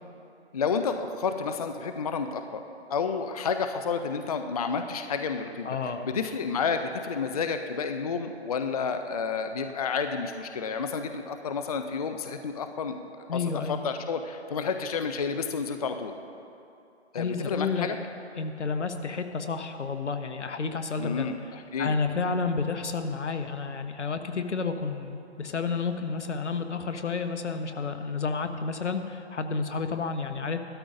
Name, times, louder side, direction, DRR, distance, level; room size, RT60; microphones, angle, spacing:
voice 1, 0.5-2.6 2.9-13.4 13.7-16.1 17.1-18.0 21.0-22.0, left 5 dB, 35° left, 7 dB, 0.4 m, -30 dB
voice 2, 5.6-6.1 13.3-13.8 17.2-17.9 18.4-21.3 21.8-30.6, left 4 dB, 85° left, 7 dB, 1.0 m, -30 dB
14.5 x 13.0 x 2.6 m, 2.7 s
hypercardioid pair, 150°, 34 cm